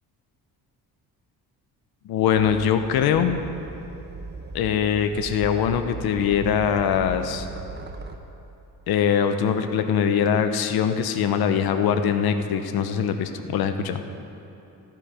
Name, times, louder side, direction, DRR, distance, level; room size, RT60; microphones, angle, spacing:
voice 1, 2.0-3.4 4.5-7.5 8.9-14.0, left 8 dB, 75° left, 8 dB, 0.8 m, -22 dB
sound 1, 2.3-8.2, right 3 dB, 30° right, 0.9 m, -38 dB
14.0 x 11.0 x 4.9 m, 2.9 s
cardioid pair, 100°, 37 cm